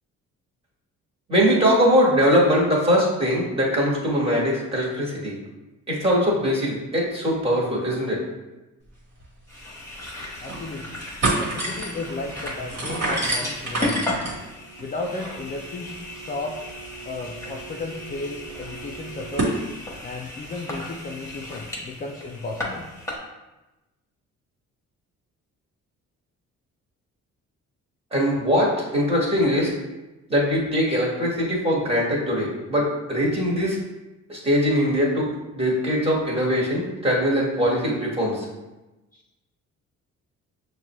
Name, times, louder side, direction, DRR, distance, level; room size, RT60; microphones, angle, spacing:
voice 1, 1.3-5.4 5.9-8.2 28.1-29.7 30.3-33.8 34.3-38.4, equal, 20° right, -4 dB, 1.3 m, -21 dB
sound 1, 9.2-9.3 9.6-9.7 10.2-10.6 10.9-19.6, right 2 dB, 55° right, 1.3 m, -30 dB
sound 2, 9.5-23.2, left 1 dB, 10° left, 1.0 m, -36 dB
voice 2, 10.4-11.1 11.3-14.3 14.8-16.6 17.0-19.6 20.0-22.9, left 3 dB, 30° left, 0 dB, 0.4 m, -34 dB
6.2 x 2.2 x 3.0 m, 1.1 s
cardioid pair, 90°, 30 cm